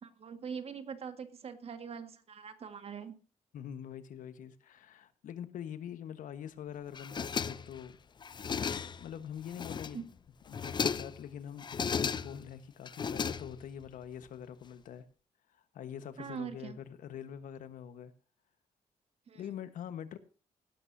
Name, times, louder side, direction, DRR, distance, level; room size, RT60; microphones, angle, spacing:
voice 1, 0.0-3.2 9.9-10.0 16.2-16.8 19.3-19.4, right 6 dB, 50° right, 9 dB, 1.8 m, -42 dB
voice 2, 3.5-7.9 9.0-10.0 10.5-15.0 15.5-18.1 19.3-20.2, left 9 dB, 80° left, 12 dB, 1.3 m, -44 dB
Unrolling a toilet paper roll, 6.9-7.8 8.2-9.1 9.5-10.1 10.5-11.2 11.6-12.5 12.9-13.8, left 6 dB, 35° left, 0.6 m, -35 dB
17.5 x 12.5 x 2.7 m, 0.36 s
cardioid pair, 125°, 13 cm